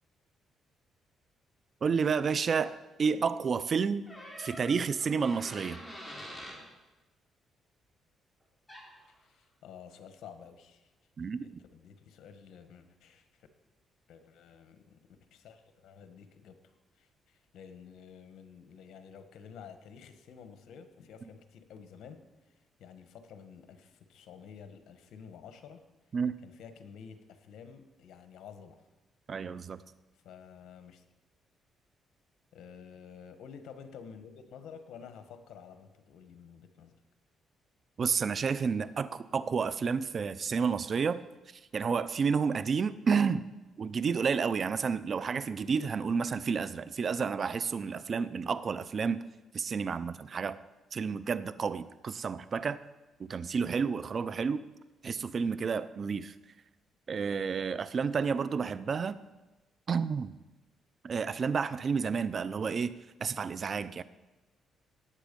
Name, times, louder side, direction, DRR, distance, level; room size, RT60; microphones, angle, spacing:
voice 1, 1.8-4.0 4.4-5.8 11.2-11.6 26.1-26.3 29.3-29.8 38.0-41.2 41.7-43.4 43.8-49.2 49.5-50.6 50.9-52.8 53.2-54.6 55.0-56.3 57.1-59.2 59.9-60.3 61.0-62.9 63.2-64.0, right 5 dB, 45° right, 15 dB, 0.6 m, -30 dB
sound 1, 4.1-6.6 8.7-8.9, equal, 5° left, 4.1 m, -45 dB
voice 2, 9.2-10.9 11.4-13.5 14.1-15.0 15.3-25.8 26.4-28.9 30.2-31.0 32.5-37.0, left 7 dB, 75° left, 9 dB, 1.3 m, -51 dB
18.0 x 7.3 x 5.3 m, 1.1 s
cardioid pair, 90°, 0 cm